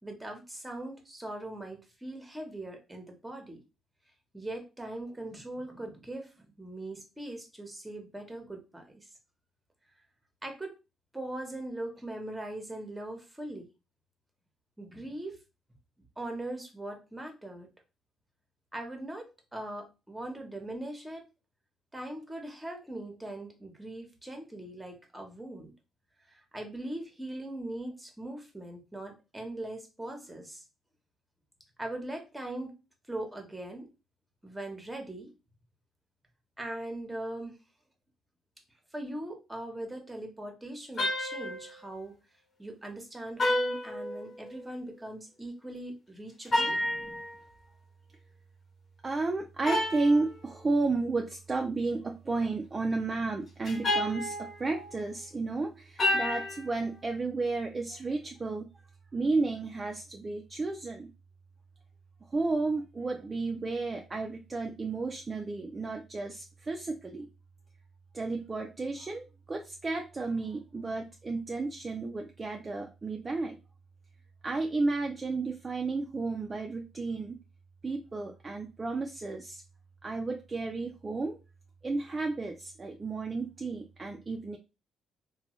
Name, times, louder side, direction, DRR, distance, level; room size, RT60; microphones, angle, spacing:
voice 1, 0.0-3.6 4.3-9.1 10.4-10.7 11.1-13.7 14.8-15.4 16.2-17.7 18.7-19.2 19.5-21.2 21.9-25.7 26.3-30.6 31.8-32.7 33.1-33.9 34.4-35.3 36.6-37.6 38.9-42.1 42.6-46.8, right 1 dB, 10° right, 4 dB, 0.9 m, -40 dB
sound 1, 41.0-41.8 43.4-44.6 46.5-47.4 49.6-50.3 53.6-55.0 56.0-56.7, left 1 dB, 45° left, 1.1 m, -30 dB
voice 2, 49.0-58.7 59.1-61.1 62.3-67.3 68.1-73.6 74.4-77.4 77.8-79.6 80.0-81.4 81.8-84.6, right 3 dB, 30° right, 2 dB, 0.4 m, -32 dB
2.9 x 2.2 x 3.0 m, 0.28 s
cardioid pair, 90°, 0 cm